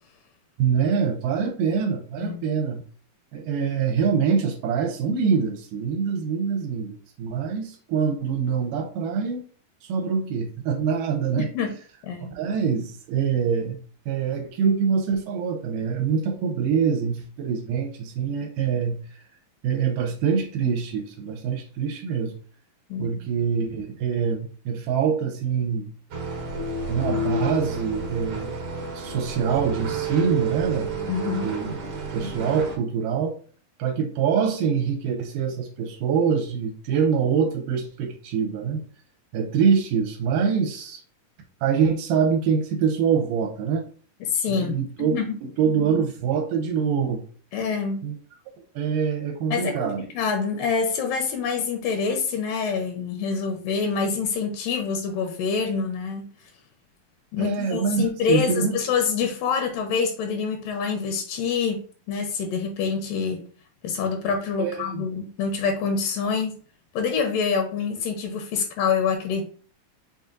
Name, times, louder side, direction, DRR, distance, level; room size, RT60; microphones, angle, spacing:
voice 1, 0.6-2.8 3.3-9.4 9.8-11.5 12.3-13.8 14.1-19.0 19.6-22.3 23.0-25.9 26.9-30.9 31.4-31.8 32.1-33.4 33.8-38.8 39.3-41.0 41.6-43.9 44.5-47.2 48.0-48.2 48.8-50.0 57.4-58.8 64.6-65.1 66.2-66.3, right 6 dB, 85° right, 4 dB, 2.2 m, -25 dB
voice 2, 11.4-11.7 12.0-12.3 22.9-23.2 31.1-31.5 44.3-45.4 47.5-48.1 49.5-56.3 57.3-63.4 63.8-66.6 66.9-69.4, left 5 dB, 80° left, 5 dB, 2.3 m, -26 dB
sound 1, 26.1-32.8, right 2 dB, 60° right, 1.6 m, -30 dB
5.5 x 3.7 x 2.6 m, 0.42 s
omnidirectional pair, 3.9 m